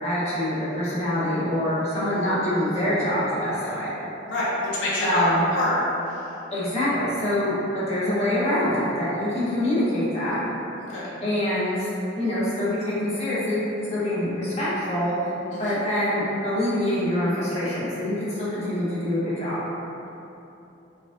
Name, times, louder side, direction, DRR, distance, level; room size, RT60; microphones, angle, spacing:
voice 1, 0.0-3.9 5.0-5.4 6.5-7.5 7.9-10.4 11.2-11.9 12.2-13.6 13.9-15.1 15.6-19.6, left 1 dB, 35° left, -11 dB, 1.1 m, -25 dB
voice 2, 4.3-5.3 5.6-5.8 10.8-11.1 15.5-15.7, left 1 dB, 80° left, -8 dB, 0.7 m, -26 dB
4.7 x 2.4 x 2.5 m, 2.9 s
head